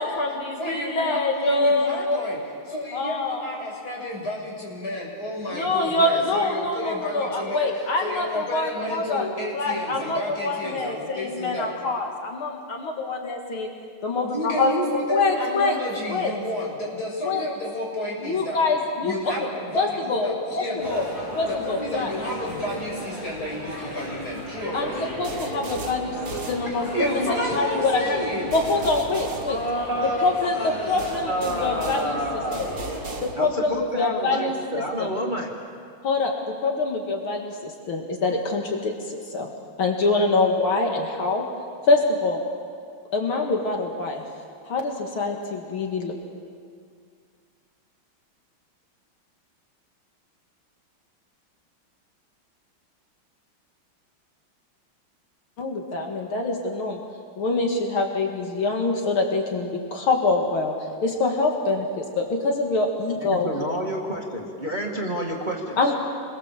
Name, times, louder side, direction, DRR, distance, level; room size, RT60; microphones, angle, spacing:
voice 1, 0.0-2.2 2.9-3.4 5.5-9.3 9.5-13.7 14.0-14.7 15.1-15.8 16.1-16.3 17.2-17.5 18.2-19.3 19.8-20.3 20.5-21.1 21.4-22.1 24.7-28.2 28.5-29.6 30.2-32.2 32.6-32.7 33.2-35.1 36.0-36.3 36.6-39.5 39.8-41.4 41.9-42.4 43.1-44.2 44.7-46.2 55.6-57.0 57.4-60.7 61.0-63.5 65.8-65.9, left 3 dB, 75° left, 2 dB, 2.7 m, -25 dB
voice 2, 0.6-2.4 2.7-11.7 14.2-18.6 19.0-21.0 21.5-25.0 26.6-28.6, left 1 dB, 45° left, -3 dB, 6.8 m, -31 dB
sound 1, 20.8-33.1, equal, 20° left, 8.3 m, -36 dB
sound 2, 25.2-27.2 28.5-30.3 31.0-33.8, right 3 dB, 45° right, 2.6 m, -36 dB
voice 3, 29.3-32.6 33.4-35.5 63.2-65.8, equal, 20° right, -1 dB, 2.3 m, -29 dB
28.5 x 21.5 x 7.5 m, 2.2 s
omnidirectional pair, 2.3 m